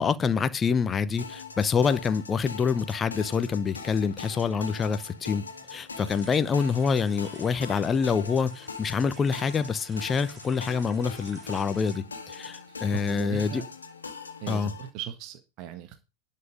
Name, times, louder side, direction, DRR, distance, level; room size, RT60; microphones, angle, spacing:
voice 1, 0.0-5.4 5.7-13.6 14.5-14.7, left 6 dB, 20° left, 0.9 m, -26 dB
sound 1, 1.2-14.9, left 5 dB, 75° left, 1.8 m, -42 dB
sound 2, 6.0-12.0, right 5 dB, 25° right, 2.1 m, -53 dB
voice 2, 12.9-13.6 14.4-16.0, right 11 dB, 40° right, 1.6 m, -38 dB
11.5 x 7.6 x 5.2 m
figure-of-eight pair, 90°, 0 cm